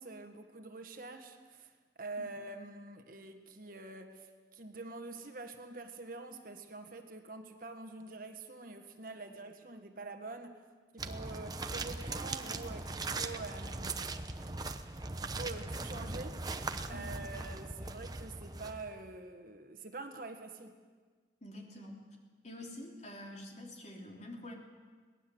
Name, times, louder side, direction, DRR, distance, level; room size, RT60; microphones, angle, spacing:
voice 1, 0.0-1.7 2.0-4.3 4.5-10.6 10.9-14.3 15.2-16.4 16.9-20.8, right 3 dB, 50° right, 6 dB, 1.6 m, -46 dB
sound 1, 11.0-19.1, right 3 dB, 20° right, 0.9 m, -40 dB
voice 2, 21.4-22.1 22.4-24.5, left 1 dB, 40° left, 0 dB, 3.5 m, -47 dB
22.5 x 19.0 x 7.9 m, 1.5 s
head